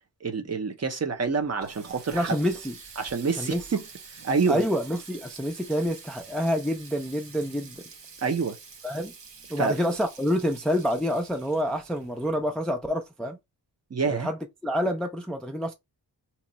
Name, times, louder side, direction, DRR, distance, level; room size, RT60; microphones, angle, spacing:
voice 1, 0.2-2.3 3.0-3.8 4.2-4.6 8.2-8.6 9.6-9.8 13.9-14.3, right 5 dB, 40° right, 0.6 m, -27 dB
Water tap faucet, 1.1-12.8, right 5 dB, 85° right, 1.0 m, -48 dB
voice 2, 2.1-2.7 3.4-3.6 4.5-7.8 8.8-9.1 9.5-13.4 14.0-15.7, equal, ahead, 0.4 m, -27 dB
2.9 x 2.3 x 3.9 m
wide cardioid pair, 145°, 42 cm